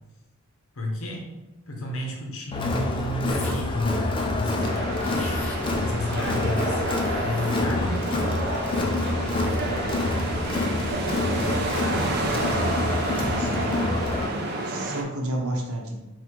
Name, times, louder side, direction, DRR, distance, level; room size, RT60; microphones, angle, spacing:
voice 1, 0.7-1.3 1.7-4.0 4.3-5.3 5.8-6.8 7.2-8.0, left 1 dB, 70° left, 0 dB, 0.8 m, -31 dB
Crowd, 2.5-14.3, left 2 dB, 25° left, 0.4 m, -27 dB
sound 1, 3.3-3.8 4.2-4.3 4.5-5.6 6.9-7.9, left 1 dB, 5° left, 0.8 m, -39 dB
sound 2, 4.6-15.0, right 2 dB, 50° right, 0.5 m, -30 dB
voice 2, 11.3-12.5 13.2-13.8 14.6-15.9, right 1 dB, 75° right, 1 dB, 0.8 m, -33 dB
4.0 x 2.4 x 4.4 m, 1.0 s
head